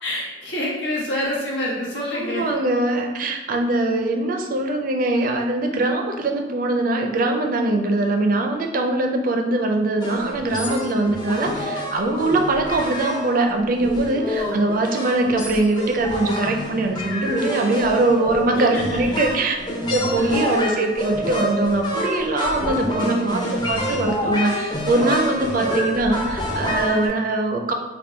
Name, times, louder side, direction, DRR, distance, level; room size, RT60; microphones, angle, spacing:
voice 1, 0.0-2.6 14.2-14.7 18.7-19.4 20.1-20.6 22.9-23.2 25.4-25.7, left 1 dB, 90° left, -5 dB, 1.1 m, -28 dB
voice 2, 1.9-19.5 19.9-27.7, right 2 dB, 50° right, 4 dB, 0.4 m, -22 dB
sound 1, 10.0-27.1, equal, 25° left, 0.6 m, -27 dB
3.5 x 2.2 x 4.3 m, 1.2 s
head